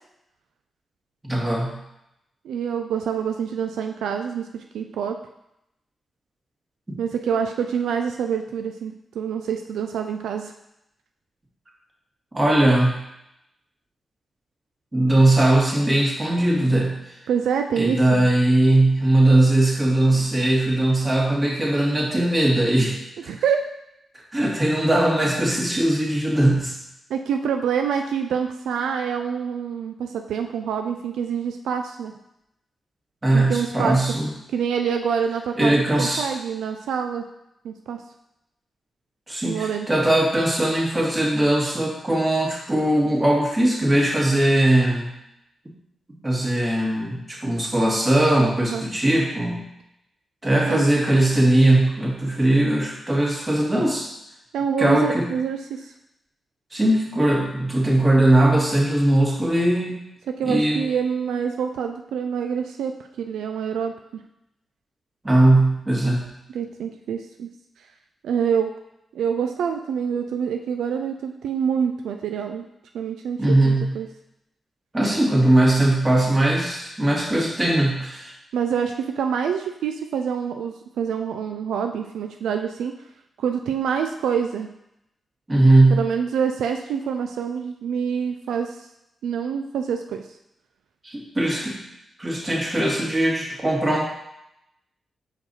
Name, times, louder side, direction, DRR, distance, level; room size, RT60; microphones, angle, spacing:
voice 1, 1.2-1.7 6.9-7.0 12.3-12.9 14.9-17.2 17.8-23.0 24.3-26.7 33.2-34.3 35.6-36.3 39.3-45.1 46.2-49.6 50.4-54.1 54.8-55.3 56.7-60.0 60.5-60.8 65.2-66.3 73.4-73.9 74.9-78.3 85.5-86.0 91.0-91.8 92.2-94.0, right 1 dB, 25° right, -2 dB, 1.9 m, -19 dB
voice 2, 2.4-5.2 7.0-10.5 17.3-18.2 23.3-23.7 27.1-32.1 33.3-34.1 34.5-37.3 37.6-38.0 39.5-39.9 48.7-48.8 50.7-50.8 54.5-55.9 60.3-64.2 66.5-67.5 68.2-68.7 69.1-72.7 72.9-74.1 78.5-82.9 83.4-84.7 85.9-88.9 89.2-90.2, right 7 dB, 90° right, 5 dB, 0.3 m, -26 dB
5.2 x 4.6 x 4.1 m, 0.84 s
cardioid pair, 55°, 0 cm